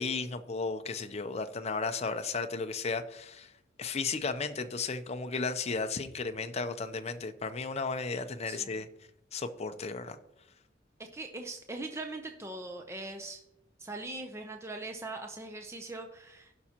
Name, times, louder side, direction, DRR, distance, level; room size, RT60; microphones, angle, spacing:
voice 1, 0.0-3.5 3.8-8.9 9.3-10.2, left 4 dB, 35° left, 8 dB, 0.6 m, -34 dB
voice 2, 8.5-8.8 11.0-13.4 13.8-16.5, right 2 dB, 15° right, 4 dB, 0.6 m, -41 dB
15.5 x 5.9 x 2.9 m, 0.86 s
head